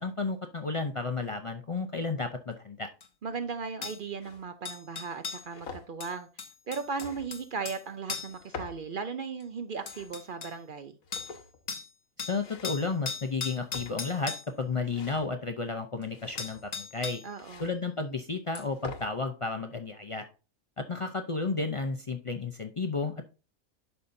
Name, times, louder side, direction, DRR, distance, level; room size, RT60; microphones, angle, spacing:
voice 1, 0.0-2.9 12.2-17.2 17.6-20.3 20.8-23.2, left 4 dB, 55° left, 0.3 m, -32 dB
sound 1, 3.0-3.1 3.8-4.0 4.7-5.5 6.0-7.8 8.1-8.4 9.4-9.5 9.9-10.6 11.1-11.4 11.7-11.9 12.2-14.5 16.0-16.1 16.4-17.3 18.6-18.7, left 5 dB, 40° left, 0.7 m, -38 dB
voice 2, 3.2-6.3 6.7-11.0 17.2-17.7, right 5 dB, 55° right, 0.6 m, -37 dB
sound 2, 4.2-4.5 5.1-5.9 6.8-7.5 8.3-8.9 9.6-10.2 11.0-11.7 12.4-12.8 13.5-14.2 14.8-15.3 16.1-16.7 17.4-17.7 18.5-19.1, left 4 dB, 85° left, 1.4 m, -45 dB
11.5 x 5.4 x 2.6 m
omnidirectional pair, 1.4 m